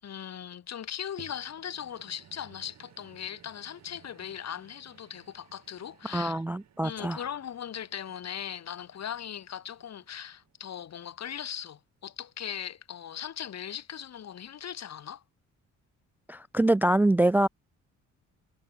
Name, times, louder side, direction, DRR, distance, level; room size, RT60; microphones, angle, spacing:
voice 1, 0.0-6.4 6.8-15.2, left 9 dB, 60° left, 4.8 m, -39 dB
sound 1, 1.2-11.7 12.3-12.4, right 10 dB, 60° right, 4.0 m, -58 dB
voice 2, 6.0-7.2 16.3-17.5, right 1 dB, 5° right, 0.3 m, -24 dB
cardioid pair, 90°, 30 cm